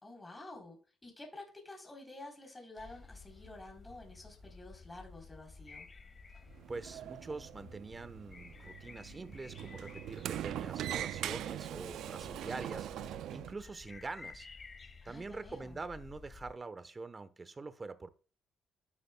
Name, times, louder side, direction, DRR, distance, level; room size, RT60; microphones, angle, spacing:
voice 1, 0.0-5.9 15.0-15.8, left 2 dB, 20° left, 3.9 m, -50 dB
sound 1, 2.8-16.5, left 4 dB, 40° left, 1.6 m, -53 dB
Sliding door, 6.5-13.5, right 12 dB, 80° right, 0.4 m, -42 dB
voice 2, 6.7-14.5 15.0-18.1, right 3 dB, 30° right, 1.0 m, -45 dB
12.0 x 9.7 x 2.3 m
cardioid pair, 90°, 0 cm